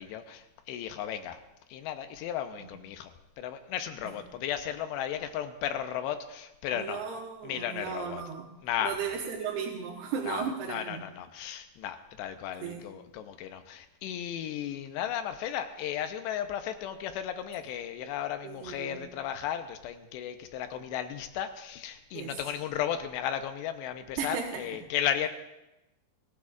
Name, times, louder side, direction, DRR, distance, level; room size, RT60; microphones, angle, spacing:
voice 1, 0.0-1.4 1.7-3.1 3.4-7.0 7.4-8.2 8.6-9.1 10.3-25.3, left 10 dB, 85° left, 8 dB, 2.9 m, -35 dB
voice 2, 6.7-8.5 8.8-11.0 12.6-12.9 18.4-19.0 22.1-22.4 24.2-24.6, right 7 dB, 75° right, -2 dB, 3.1 m, -35 dB
25.0 x 15.0 x 2.4 m, 0.94 s
omnidirectional pair, 5.0 m